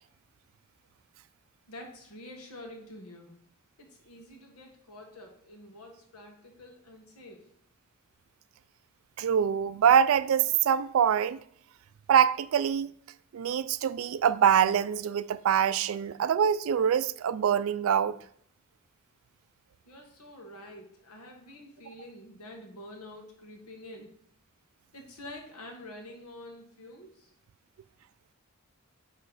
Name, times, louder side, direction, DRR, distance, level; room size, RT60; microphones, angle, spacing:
voice 1, 1.7-3.3 3.8-7.5 19.8-24.1 24.9-27.3, left 1 dB, 85° left, 1.5 m, -47 dB
voice 2, 9.2-11.4 12.1-12.9 13.3-18.2, right 8 dB, 70° right, 0.3 m, -24 dB
9.1 x 3.2 x 4.0 m
head